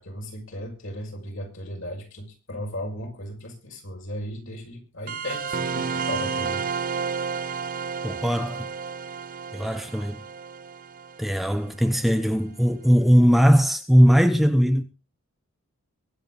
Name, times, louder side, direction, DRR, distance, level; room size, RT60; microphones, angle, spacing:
voice 1, 0.0-6.6, left 1 dB, 60° left, 6.0 m, -36 dB
sound 1, 5.1-12.2, right 5 dB, 40° right, 0.7 m, -31 dB
voice 2, 8.0-8.7 9.5-10.2 11.2-14.8, equal, ahead, 0.8 m, -19 dB
23.5 x 8.3 x 4.0 m
head